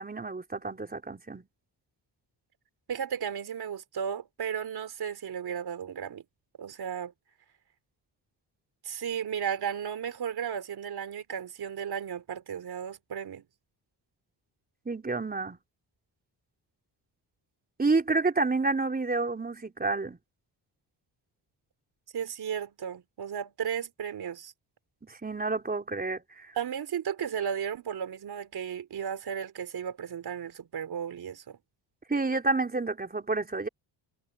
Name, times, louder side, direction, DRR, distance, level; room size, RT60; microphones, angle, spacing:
voice 1, 0.0-1.4 14.9-15.6 17.8-20.2 25.0-26.6 32.1-33.7, right 3 dB, 20° right, 4.1 m, -29 dB
voice 2, 2.9-6.2 6.6-7.1 8.8-13.5 22.1-24.5 26.6-31.6, right 8 dB, 60° right, 3.6 m, -34 dB
cardioid pair, 95°, 42 cm